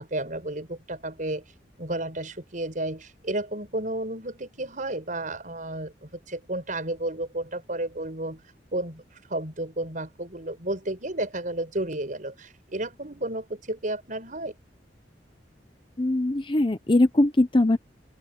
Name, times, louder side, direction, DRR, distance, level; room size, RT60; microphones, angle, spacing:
voice 1, 0.0-1.4 1.8-8.4 8.7-9.0 9.3-14.6, right 1 dB, 45° right, 6.7 m, -32 dB
voice 2, 16.0-17.8, left 1 dB, 30° left, 0.8 m, -21 dB
head